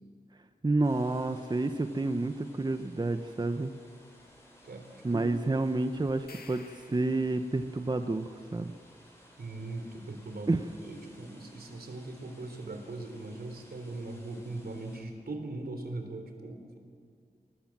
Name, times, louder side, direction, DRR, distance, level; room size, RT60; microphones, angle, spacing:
voice 1, 0.6-3.7 5.0-8.7 10.5-10.6, right 2 dB, 25° right, 8 dB, 0.9 m, -29 dB
sound 1, 0.8-15.0, equal, 15° left, 7.3 m, -58 dB
sound 2, 6.1-7.7, left 4 dB, 75° left, 1.8 m, -53 dB
voice 2, 9.4-16.8, right 2 dB, 80° right, 5 dB, 3.6 m, -40 dB
28.0 x 19.5 x 7.4 m, 2.1 s
wide cardioid pair, 90°, 16 cm